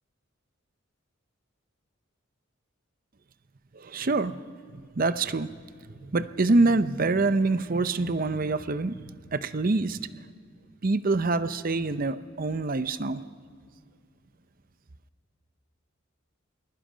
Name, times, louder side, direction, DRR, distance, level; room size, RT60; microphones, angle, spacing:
voice 1, 3.8-4.4 5.0-5.5 6.0-8.9 9.3-10.0 10.8-13.2, right 3 dB, 45° right, 13 dB, 0.7 m, -25 dB
28.5 x 21.0 x 5.1 m, 2.2 s
head